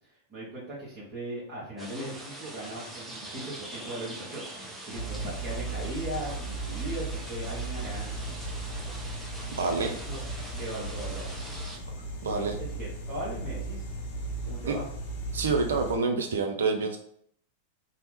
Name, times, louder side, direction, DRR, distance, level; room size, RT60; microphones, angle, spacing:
voice 1, 0.0-4.5 4.9-8.2 9.6-10.2 10.6-11.3 12.2-13.8 14.4-14.8, right 1 dB, 35° right, -8 dB, 1.0 m, -38 dB
sound 1, 1.8-11.8, right 1 dB, 5° left, 0.7 m, -43 dB
sound 2, 4.9-16.0, right 2 dB, 55° left, 0.7 m, -36 dB
voice 2, 9.6-10.0 12.2-12.6 14.4-14.7 15.3-17.0, right 4 dB, 65° right, 4 dB, 0.5 m, -28 dB
2.7 x 2.1 x 3.3 m, 0.65 s
figure-of-eight pair, 90°, 0 cm